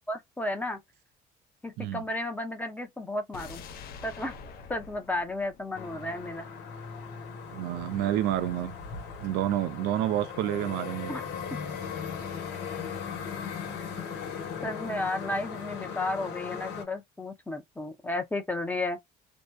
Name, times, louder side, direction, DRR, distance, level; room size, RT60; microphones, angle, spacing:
voice 1, 0.1-0.8 1.6-3.6 4.0-4.3 4.7-6.5 11.1-11.2 11.5-11.6 14.6-19.0, left 2 dB, 10° left, 0.6 m, -33 dB
sound 1, 3.3-6.5 6.8-6.9, left 5 dB, 65° left, 0.6 m, -46 dB
sound 2, 5.7-16.8, left 6 dB, 80° left, 1.1 m, -38 dB
voice 2, 7.5-8.7 9.2-11.1, right 12 dB, 90° right, 0.4 m, -29 dB
2.7 x 2.1 x 2.2 m
cardioid pair, 110°, 17 cm